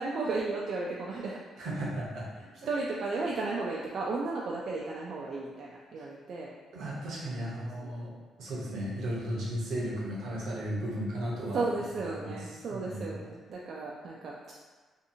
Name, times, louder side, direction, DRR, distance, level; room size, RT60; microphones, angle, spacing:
voice 1, 0.0-1.4 2.7-6.5 7.7-7.9 11.5-14.5, right 3 dB, 60° right, -4 dB, 0.3 m, -34 dB
voice 2, 1.6-2.3 6.0-6.1 6.7-8.1 8.4-11.7 12.0-13.2, right 1 dB, 80° right, -5 dB, 0.8 m, -35 dB
2.7 x 2.4 x 2.6 m, 1.4 s
cardioid pair, 90°, 0 cm